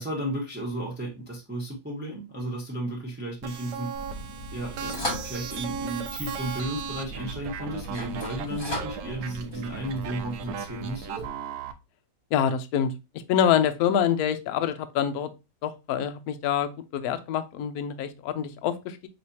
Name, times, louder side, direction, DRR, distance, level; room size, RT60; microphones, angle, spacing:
voice 1, 0.0-3.9 4.5-11.2, right 1 dB, 10° right, -3 dB, 0.8 m, -34 dB
sound 1, 3.4-11.7, right 7 dB, 75° right, 1.2 m, -37 dB
sound 2, 3.9-11.3, equal, 30° left, 1.5 m, -38 dB
voice 2, 12.3-12.9 13.3-15.3 15.6-19.1, left 9 dB, 70° left, 10 dB, 1.0 m, -26 dB
4.7 x 3.3 x 2.7 m, 0.26 s
omnidirectional pair, 1.9 m